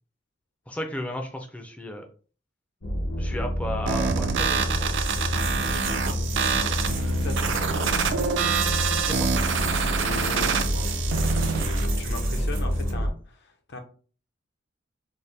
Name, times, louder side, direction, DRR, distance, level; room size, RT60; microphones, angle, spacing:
voice 1, 0.7-2.0 3.2-5.0 9.0-9.3, equal, 5° left, 3 dB, 0.4 m, -34 dB
sound 1, 2.8-13.1, equal, 75° left, 1.0 m, -28 dB
sound 2, 3.9-11.9, right 6 dB, 65° right, 0.4 m, -27 dB
sound 3, 4.8-12.9, right 7 dB, 85° right, 1.0 m, -38 dB
voice 2, 5.5-8.1 9.7-11.0 11.4-13.8, left 3 dB, 60° left, 5 dB, 0.7 m, -40 dB
4.1 x 2.1 x 3.2 m, 0.40 s
head